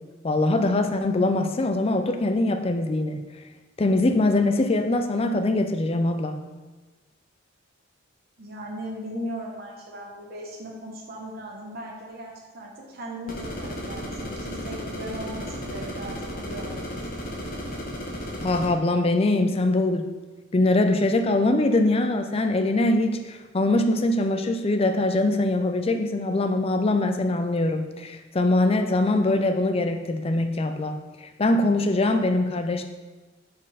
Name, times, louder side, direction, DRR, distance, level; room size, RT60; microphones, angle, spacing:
voice 1, 0.2-3.2 3.8-6.4 18.4-20.1 20.5-31.0 31.4-32.8, left 2 dB, 30° left, 7 dB, 0.4 m, -23 dB
voice 2, 8.4-17.1, equal, 45° right, -2 dB, 0.9 m, -37 dB
sound 1, 13.3-18.7, equal, 45° left, 1.1 m, -34 dB
5.3 x 4.6 x 4.9 m, 1.2 s
head